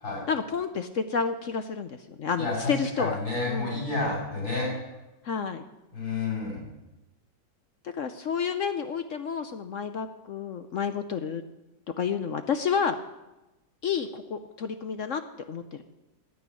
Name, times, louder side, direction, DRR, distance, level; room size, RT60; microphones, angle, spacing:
voice 1, 0.3-3.2 3.5-3.8 5.2-5.7 7.8-11.4 11.9-13.0 13.8-15.2 15.5-15.8, left 6 dB, 60° left, 9 dB, 0.8 m, -30 dB
voice 2, 2.4-4.7 5.9-6.6, left 3 dB, 85° left, -5 dB, 7.6 m, -30 dB
11.0 x 9.6 x 9.9 m, 1.0 s
omnidirectional pair, 2.1 m